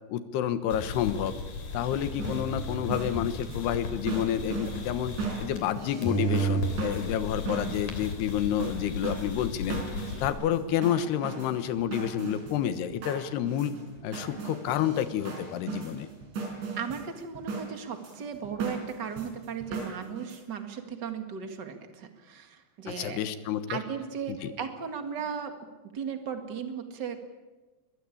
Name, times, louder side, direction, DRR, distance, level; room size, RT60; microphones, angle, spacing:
voice 1, 0.1-1.3 1.7-13.7 14.0-16.1 22.9-23.7 24.3-24.5, left 10 dB, 70° left, 11 dB, 3.2 m, -29 dB
sound 1, 0.7-5.8 6.0-10.3, equal, 50° left, 4.3 m, -34 dB
sound 2, 1.9-2.5 2.8-20.4, right 4 dB, 80° right, 7.0 m, -37 dB
voice 2, 16.8-23.2 23.7-27.2, right 7 dB, 55° right, 7 dB, 1.2 m, -36 dB
22.5 x 21.0 x 8.7 m, 1.2 s
omnidirectional pair, 5.2 m